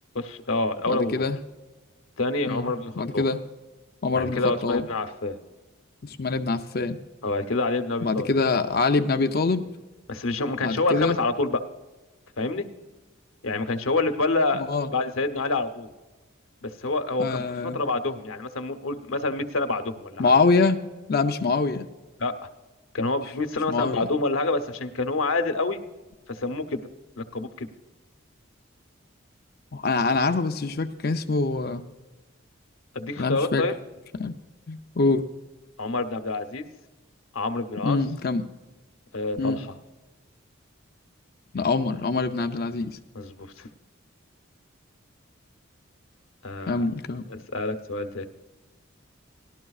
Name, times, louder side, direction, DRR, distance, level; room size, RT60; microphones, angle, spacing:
voice 1, 0.1-1.2 2.2-3.3 4.1-5.4 7.2-8.3 10.1-11.6 12.4-12.7 13.4-14.6 14.9-15.9 16.6-20.3 22.2-22.3 22.9-25.8 26.3-26.8 27.2-27.7 32.9-33.7 35.8-36.7 37.3-38.0 39.1-39.7 43.1-43.7 46.4-46.9 47.3-48.3, left 3 dB, 80° left, 6 dB, 0.9 m, -27 dB
voice 2, 0.9-1.4 2.5-3.4 4.0-4.9 6.0-7.0 8.0-9.6 10.6-11.2 14.6-14.9 17.2-17.8 20.2-20.8 21.1-21.9 23.7-24.1 29.7-31.8 33.2-33.6 34.2-34.3 34.7-35.2 37.8-38.4 39.4-39.6 41.5-43.0 46.7-47.2, left 3 dB, 50° left, 6 dB, 0.5 m, -24 dB
18.5 x 12.0 x 2.4 m, 1.2 s
head